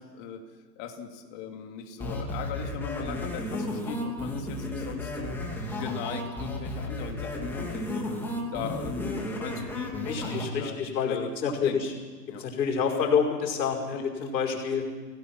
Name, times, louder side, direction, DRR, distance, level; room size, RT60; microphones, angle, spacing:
voice 1, 0.1-0.4 0.8-8.1 8.5-11.3 11.6-11.8 12.3-12.4 13.9-14.2, left 8 dB, 30° left, 3 dB, 2.7 m, -39 dB
sound 1, 2.0-10.4, left 1 dB, 5° left, 2.6 m, -33 dB
voice 2, 10.1-11.9 12.4-14.8, left 6 dB, 75° left, 1 dB, 5.4 m, -28 dB
29.5 x 17.5 x 6.0 m, 1.4 s
hypercardioid pair, 160°, 50 cm